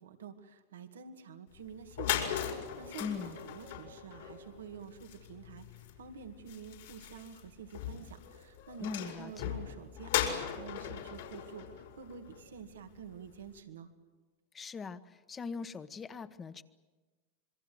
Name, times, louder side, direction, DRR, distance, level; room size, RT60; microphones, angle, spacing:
voice 1, 0.0-13.9, right 7 dB, 90° right, 6 dB, 2.2 m, -49 dB
sound 1, 1.6-1.7 1.9-12.7, left 10 dB, 75° left, 5.4 m, -38 dB
voice 2, 3.0-3.4 8.8-9.5 14.5-16.6, left 5 dB, 20° left, 11 dB, 1.2 m, -41 dB
27.0 x 23.0 x 7.9 m, 1.3 s
hypercardioid pair, 115°, 0 cm